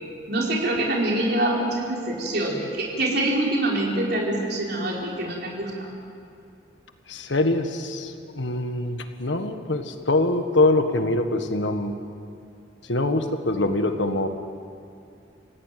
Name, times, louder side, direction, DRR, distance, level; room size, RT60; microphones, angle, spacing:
voice 1, 0.3-5.9, right 1 dB, 60° right, -2 dB, 4.6 m, -25 dB
voice 2, 7.1-11.9 12.8-14.3, left 2 dB, 85° left, 7 dB, 1.6 m, -24 dB
28.5 x 16.5 x 9.3 m, 2.5 s
head